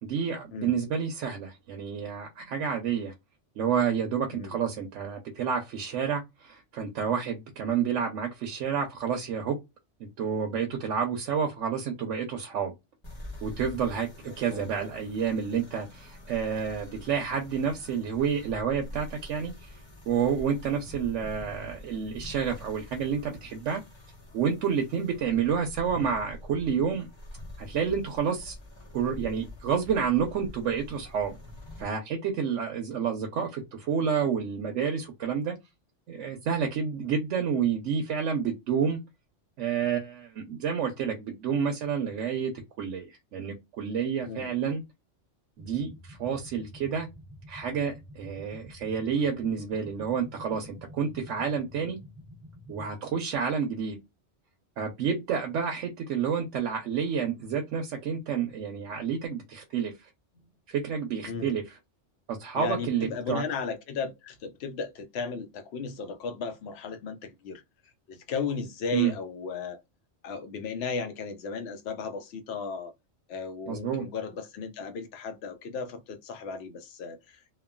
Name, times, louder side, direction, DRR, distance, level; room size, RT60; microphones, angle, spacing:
voice 1, 0.0-3.1 3.6-9.6 10.0-12.7 13.4-14.1 14.4-19.8 20.1-23.8 24.3-27.1 27.6-28.5 28.9-31.3 31.8-35.6 36.1-39.0 39.6-42.5 42.8-44.8 45.6-47.1 47.5-52.0 52.7-54.0 54.8-60.1 60.7-61.8 62.3-63.4 68.9-69.1 73.7-74.1, right 7 dB, 85° right, 1.0 m, -29 dB
sound 1, 13.0-31.8, left 1 dB, 25° left, 0.9 m, -45 dB
voice 2, 14.2-14.7 44.2-44.6 61.3-61.5 62.5-67.6 68.1-69.8 70.2-72.9 73.3-77.4, left 5 dB, 65° left, 0.8 m, -35 dB
sound 2, 45.6-52.9, equal, 45° right, 1.0 m, -48 dB
3.0 x 2.2 x 2.3 m
omnidirectional pair, 1.2 m